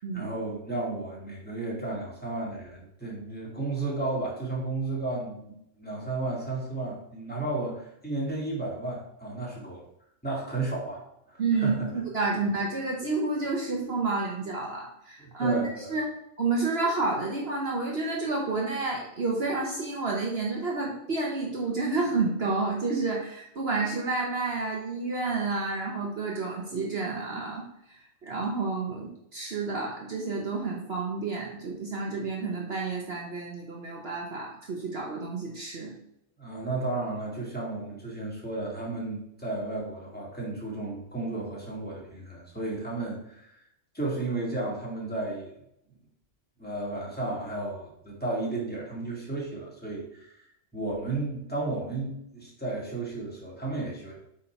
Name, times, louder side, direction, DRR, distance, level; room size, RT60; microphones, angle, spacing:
voice 1, 0.0-9.9 10.2-11.0 11.3-11.9 15.2-15.9 36.4-43.6 43.9-45.5 46.6-50.5 50.7-54.1, right 2 dB, 5° left, -5 dB, 2.1 m, -33 dB
voice 2, 11.4-15.6 15.9-16.0 16.4-27.6 27.9-36.0, right 3 dB, 55° right, -2 dB, 1.3 m, -30 dB
8.2 x 3.9 x 4.5 m, 0.77 s
omnidirectional pair, 1.3 m